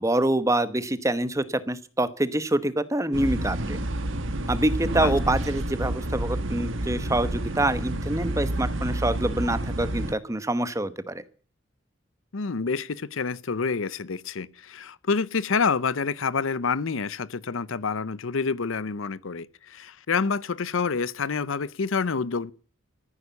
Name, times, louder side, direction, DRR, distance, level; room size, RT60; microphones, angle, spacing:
voice 1, 0.0-3.8 4.5-11.2, right 1 dB, 15° right, 1.0 m, -26 dB
sound 1, 3.1-10.1, right 1 dB, 65° right, 1.5 m, -29 dB
voice 2, 12.3-22.5, left 5 dB, 70° left, 0.6 m, -28 dB
15.0 x 9.6 x 8.2 m
head